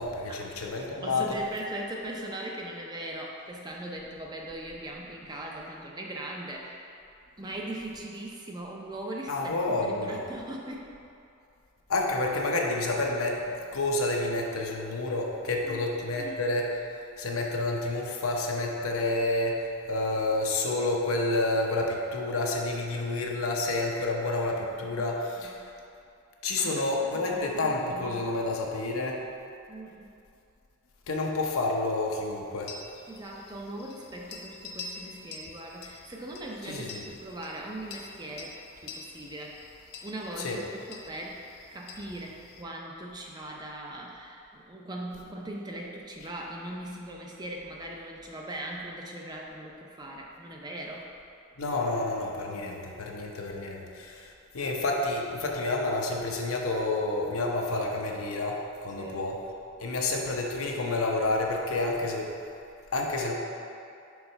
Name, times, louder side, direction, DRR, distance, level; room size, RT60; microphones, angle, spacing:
voice 1, 0.0-1.2 9.3-10.2 11.9-16.7 17.2-25.6 26.4-29.2 31.1-32.7 36.7-37.0 40.4-40.6 51.6-59.4 59.8-62.3 62.9-63.3, left 2 dB, 80° left, 0 dB, 0.8 m, -29 dB
voice 2, 1.0-7.0 7.4-10.9 15.6-15.8 16.2-16.4 24.8-25.0 25.4-25.8 26.5-28.5 29.7-30.2 33.1-39.7 40.0-51.1 52.6-52.8 59.0-59.3, right 1 dB, 20° right, -1 dB, 0.5 m, -40 dB
sound 1, 32.6-42.6, left 4 dB, 45° left, 0.5 m, -46 dB
4.7 x 4.3 x 5.5 m, 2.6 s
head